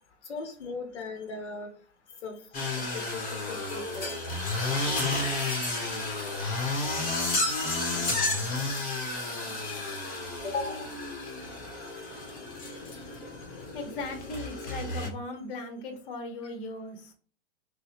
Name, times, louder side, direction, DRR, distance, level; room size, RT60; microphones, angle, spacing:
voice 1, 0.3-1.7 2.2-2.3 2.8-3.2 3.5-4.1 10.4-10.9, left 3 dB, 80° left, 5 dB, 0.9 m, -37 dB
sound 1, 2.5-15.1, left 2 dB, 25° left, 1.2 m, -32 dB
voice 2, 9.0-10.3 11.4-11.5 11.9-13.2 13.5-17.1, left 2 dB, 55° left, 6 dB, 1.0 m, -41 dB
4.0 x 2.2 x 3.1 m, 0.40 s
hypercardioid pair, 115°, 34 cm